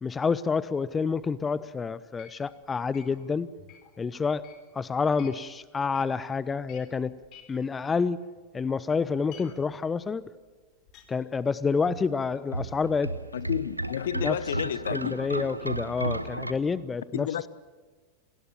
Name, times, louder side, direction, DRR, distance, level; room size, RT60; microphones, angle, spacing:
voice 1, 0.0-3.5 4.0-4.4 4.7-7.1 7.5-8.2 8.5-10.2 11.1-13.1 14.2-14.4 14.9-17.3, left 5 dB, 15° left, 0.6 m, -28 dB
sound 1, 2.2-5.5 5.8-6.2 6.5-8.6 8.9-11.0, left 9 dB, 40° left, 3.9 m, -53 dB
sound 2, 11.9-16.5, right 1 dB, 85° right, 1.0 m, -33 dB
voice 2, 13.3-15.2 17.1-17.5, left 10 dB, 60° left, 0.9 m, -31 dB
28.0 x 19.5 x 7.3 m
figure-of-eight pair, 90°, 0 cm